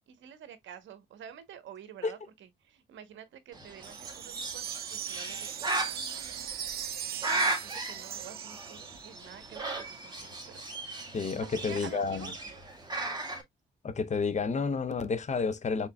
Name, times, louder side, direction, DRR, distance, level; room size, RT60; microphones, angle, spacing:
voice 1, 0.1-6.5 7.3-10.6 11.4-12.6, right 9 dB, 75° right, 1.0 m, -49 dB
Bird, 3.5-13.4, right 2 dB, 20° right, 1.7 m, -37 dB
Wind chime, 3.8-9.2, right 11 dB, 50° right, 0.4 m, -40 dB
voice 2, 11.1-12.3 13.8-15.9, left 4 dB, 35° left, 0.7 m, -30 dB
5.7 x 3.8 x 2.2 m
cardioid pair, 90°, 20 cm